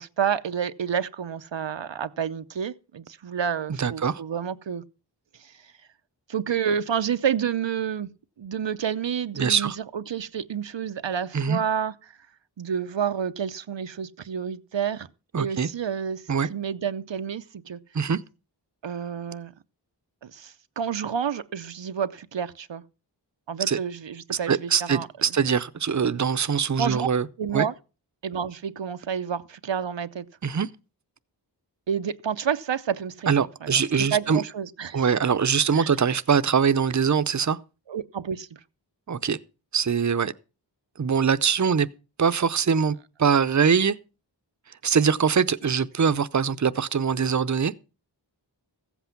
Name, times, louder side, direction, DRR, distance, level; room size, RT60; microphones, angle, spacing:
voice 1, 0.0-4.8 5.4-5.7 6.3-8.1 8.4-11.9 12.6-15.1 15.4-17.8 18.8-19.5 20.2-22.8 23.5-25.1 26.8-27.1 27.4-27.7 28.2-30.3 31.9-33.3 33.6-33.8 34.1-35.0 35.7-35.9 37.9-38.6, right 8 dB, 85° right, 0.7 m, -29 dB
voice 2, 3.8-4.2 9.4-9.8 11.3-11.6 15.3-15.7 16.3-16.5 17.9-18.2 23.7-23.8 24.3-27.3 27.5-27.7 30.4-30.7 33.3-34.4 34.9-37.6 39.1-39.4 39.7-40.3 41.0-41.9 42.2-43.9 44.8-47.7, right 6 dB, 40° right, 0.6 m, -23 dB
15.0 x 8.1 x 5.8 m
wide cardioid pair, 55°, 43 cm